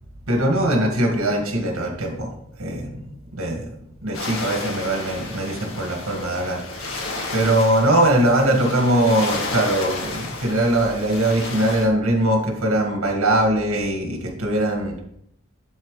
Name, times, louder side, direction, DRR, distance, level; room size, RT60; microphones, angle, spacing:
voice 1, 0.3-2.3 2.6-3.0 3.3-3.7 4.0-7.1 7.3-15.0, right 1 dB, 85° right, 1 dB, 1.9 m, -21 dB
sound 1, 4.1-11.9, left 3 dB, 70° left, 1.8 m, -32 dB
11.5 x 4.4 x 3.3 m, 0.72 s
head